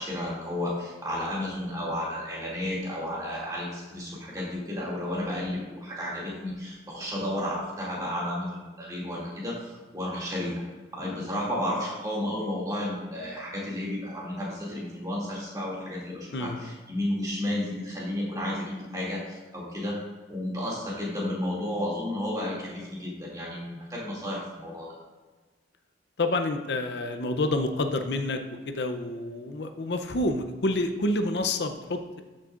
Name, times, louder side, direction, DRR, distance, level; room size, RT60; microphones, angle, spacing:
voice 1, 0.0-10.6 10.9-20.0 20.3-24.9, left 1 dB, 20° right, -5 dB, 2.4 m, -32 dB
voice 2, 16.3-16.7 26.2-32.2, left 2 dB, 70° left, 7 dB, 0.6 m, -28 dB
13.5 x 6.5 x 2.5 m, 1.3 s
head